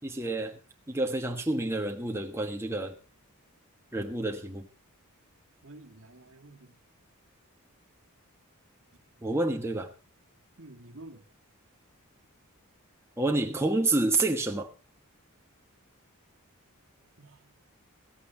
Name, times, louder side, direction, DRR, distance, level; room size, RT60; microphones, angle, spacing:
voice 1, 0.0-0.6 0.9-3.0 3.9-4.7 9.2-9.9 13.2-14.7, right 2 dB, 10° right, 1.3 m, -28 dB
voice 2, 5.6-6.8 10.6-11.3 17.2-17.5, right 2 dB, 60° right, 1.9 m, -50 dB
16.0 x 15.0 x 3.9 m
head